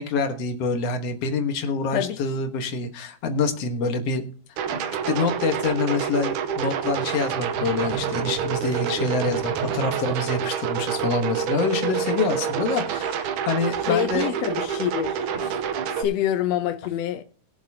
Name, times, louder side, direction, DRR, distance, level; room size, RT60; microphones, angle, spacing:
voice 1, 0.0-4.2 4.7-14.3, left 4 dB, 55° left, 2.1 m, -26 dB
sound 1, 4.6-16.0, right 7 dB, 80° right, 2.3 m, -27 dB
voice 2, 13.9-15.2 16.0-17.2, left 11 dB, 80° left, 1.5 m, -26 dB
21.0 x 7.1 x 2.8 m
omnidirectional pair, 3.7 m